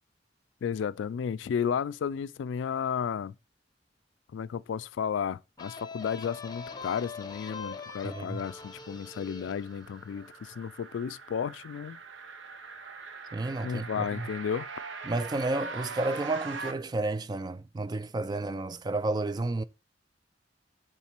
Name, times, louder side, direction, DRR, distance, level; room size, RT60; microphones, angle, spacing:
voice 1, 0.6-3.3 4.3-12.0 13.6-14.7, left 7 dB, 80° left, 0.3 m, -33 dB
sound 1, 5.6-11.0, left 4 dB, 20° left, 0.7 m, -43 dB
voice 2, 8.0-8.4 13.3-14.3 15.1-19.6, right 2 dB, 20° right, 0.3 m, -31 dB
sound 2, 8.4-16.7, right 4 dB, 90° right, 0.9 m, -42 dB
7.1 x 3.7 x 5.8 m
head